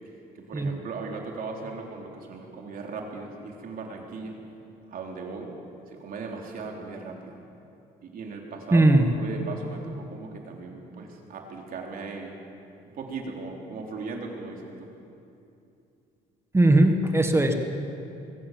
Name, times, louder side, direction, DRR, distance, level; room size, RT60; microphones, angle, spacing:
voice 1, 0.4-4.4 4.9-5.5 5.9-7.4 8.0-8.9 9.1-12.3 12.9-14.9, right 4 dB, 55° right, 1 dB, 3.5 m, -37 dB
voice 2, 8.7-9.1 16.5-17.5, right 2 dB, 15° right, 6 dB, 1.6 m, -19 dB
22.5 x 17.0 x 7.5 m, 2.7 s
cardioid pair, 110°, 17 cm